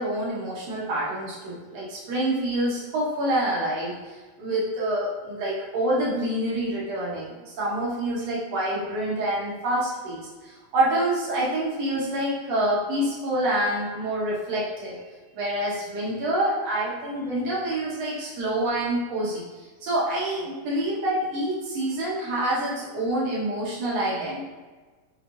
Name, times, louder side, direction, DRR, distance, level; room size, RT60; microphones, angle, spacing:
voice 1, 0.0-15.0 15.3-24.4, right 1 dB, 65° right, -6 dB, 1.7 m, -27 dB
5.3 x 3.2 x 2.5 m, 1.3 s
omnidirectional pair, 3.8 m